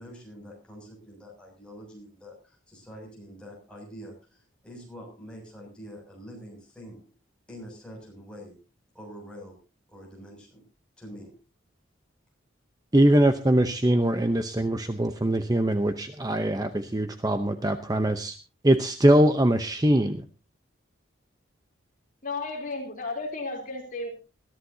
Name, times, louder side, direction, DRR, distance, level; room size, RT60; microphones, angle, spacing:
voice 1, 0.0-7.1 7.5-8.6 8.9-9.6 9.9-10.6 11.0-11.3, equal, 5° left, -2 dB, 7.0 m, -45 dB
voice 2, 12.9-18.4 18.6-20.2, right 1 dB, 20° right, 8 dB, 0.8 m, -22 dB
voice 3, 22.2-24.1, left 3 dB, 40° left, 2 dB, 3.4 m, -33 dB
21.0 x 14.0 x 2.8 m, 0.31 s
head